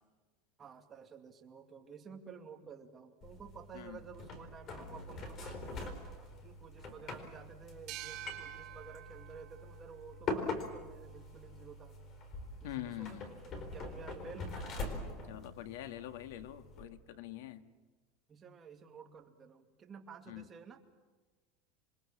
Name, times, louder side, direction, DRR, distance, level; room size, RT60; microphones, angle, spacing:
voice 1, 0.6-12.0 12.6-14.6 18.3-20.8, right 6 dB, 20° right, 4 dB, 2.4 m, -52 dB
sound 1, 3.2-16.8, left 3 dB, 30° left, 4.2 m, -44 dB
sound 2, 7.9-11.2, right 15 dB, 40° right, 2.2 m, -49 dB
voice 2, 12.6-13.3 15.3-17.6 20.3-20.4, left 13 dB, 75° left, 10 dB, 1.8 m, -44 dB
27.5 x 23.0 x 7.4 m, 1.3 s
supercardioid pair, 160°, 0 cm